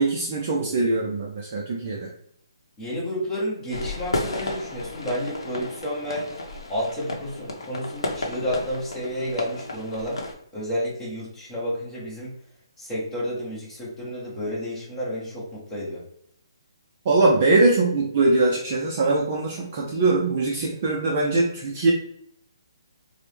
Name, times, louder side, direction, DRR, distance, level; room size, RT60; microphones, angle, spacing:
voice 1, 0.0-2.1 17.1-21.9, right 2 dB, 20° right, -3 dB, 0.3 m, -22 dB
voice 2, 2.8-6.3 6.7-10.2 10.5-12.3 12.8-16.0, equal, 10° left, -6 dB, 0.8 m, -30 dB
sound 1, 3.7-10.3, left 2 dB, 90° left, 0.8 m, -33 dB
4.4 x 2.0 x 3.3 m, 0.69 s
hypercardioid pair, 180°, 3 cm